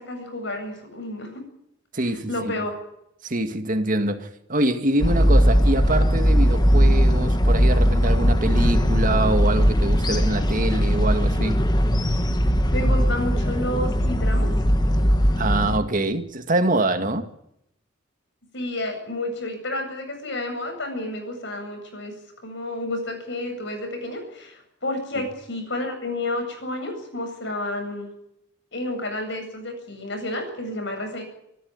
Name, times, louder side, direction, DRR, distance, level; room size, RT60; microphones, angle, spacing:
voice 1, 0.0-1.4 2.3-2.7 12.7-14.5 18.5-22.1 22.4-28.1 28.7-31.2, left 1 dB, 65° left, 7.9 m, -30 dB
voice 2, 1.9-2.6 3.2-11.6 15.4-17.3 25.2-25.3, right 1 dB, 45° right, 2.1 m, -25 dB
sound 1, 5.0-15.8, equal, 20° left, 1.8 m, -19 dB
27.0 x 13.5 x 9.6 m
head